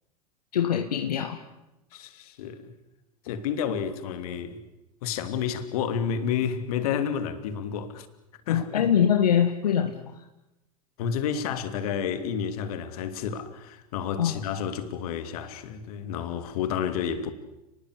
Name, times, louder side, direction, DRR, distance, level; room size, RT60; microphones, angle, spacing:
voice 1, 0.5-1.4 8.5-10.2 14.2-14.4, left 8 dB, 85° left, 1.6 m, -24 dB
voice 2, 1.9-2.8 3.2-4.6 5.0-8.1 8.5-8.9 11.0-17.3, left 7 dB, 70° left, 3.0 m, -30 dB
30.0 x 20.5 x 8.2 m
hypercardioid pair, 90°, 20 cm